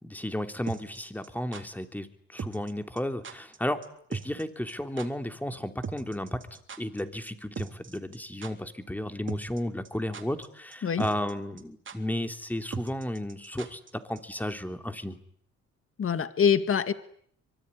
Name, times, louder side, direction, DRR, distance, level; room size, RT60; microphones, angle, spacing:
voice 1, 0.0-3.8 4.1-6.4 6.8-15.2, left 1 dB, 5° left, 7 dB, 3.2 m, -33 dB
sound 1, 0.7-1.6 2.4-2.7 3.0-3.1 3.2-3.6 3.8-4.4 4.7-4.8 5.0-5.1 5.8-7.0 7.3-7.4 7.5-8.2 8.4-8.5 9.3-9.6 9.8-10.5 10.7-10.8 11.0-11.3 11.6-11.7 11.9-12.0 12.7-13.9 14.2-14.3, right 6 dB, 40° right, 3.6 m, -38 dB
voice 2, 16.0-16.9, left 7 dB, 45° left, 11 dB, 1.9 m, -24 dB
25.0 x 23.0 x 10.0 m, 0.65 s
cardioid pair, 90°, 30 cm